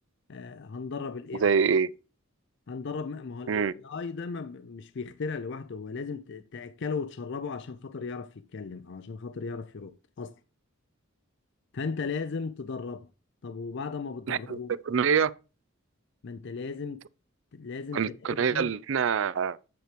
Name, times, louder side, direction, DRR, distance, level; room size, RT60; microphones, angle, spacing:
voice 1, 0.3-1.5 2.7-10.4 11.7-13.1 13.4-14.7 16.2-17.0 17.5-18.7, left 4 dB, 60° left, 0.5 m, -36 dB
voice 2, 1.4-1.9 3.5-3.7 14.3-15.3 17.9-19.6, right 6 dB, 65° right, 0.4 m, -25 dB
9.2 x 4.6 x 5.0 m
head